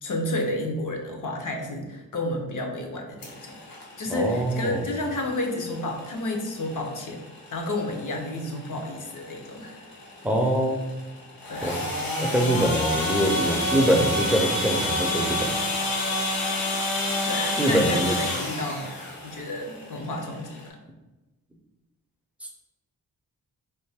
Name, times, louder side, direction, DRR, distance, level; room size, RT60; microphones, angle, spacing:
voice 1, 0.0-3.6 4.0-7.2 7.5-9.9 11.5-11.8 17.2-18.9 19.2-20.8, left 1 dB, 60° left, 2 dB, 0.7 m, -31 dB
sound 1, 3.2-20.7, left 1 dB, 85° left, 1.0 m, -30 dB
voice 2, 4.1-4.8 10.2-10.8 11.6-11.7 12.2-15.5 17.6-18.2, right 1 dB, 5° right, 1 dB, 0.5 m, -24 dB
3.3 x 2.6 x 3.4 m, 1.1 s
wide cardioid pair, 95°, 34 cm